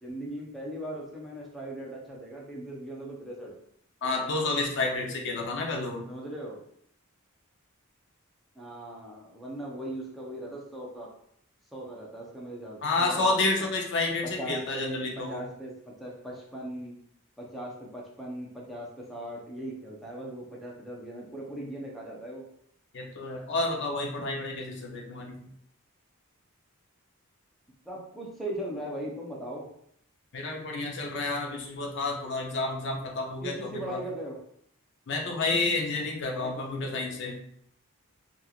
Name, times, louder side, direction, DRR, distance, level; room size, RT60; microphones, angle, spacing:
voice 1, 0.0-3.5 6.1-6.6 8.6-11.1 11.7-13.7 14.4-16.9 17.4-22.4 27.8-29.7 33.4-34.4 36.3-37.3, right 1 dB, ahead, -3 dB, 0.5 m, -39 dB
voice 2, 4.0-6.0 12.8-15.4 22.9-25.5 30.3-34.0 35.1-37.4, left 3 dB, 55° left, 0 dB, 0.6 m, -30 dB
3.0 x 2.4 x 2.4 m, 0.68 s
head